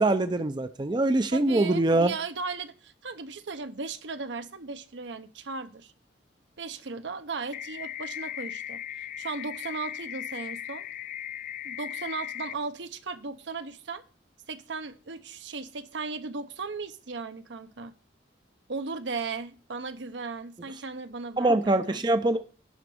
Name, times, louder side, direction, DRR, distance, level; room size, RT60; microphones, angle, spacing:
voice 1, 0.0-2.1 21.4-22.4, right 2 dB, 25° right, 0.5 m, -23 dB
voice 2, 1.3-5.9 6.6-8.8 9.2-10.9 11.6-14.0 14.5-17.9 18.7-22.0, right 4 dB, 70° right, 0.8 m, -36 dB
sound 1, 7.5-12.5, left 11 dB, 45° left, 0.3 m, -37 dB
11.0 x 3.9 x 7.7 m
head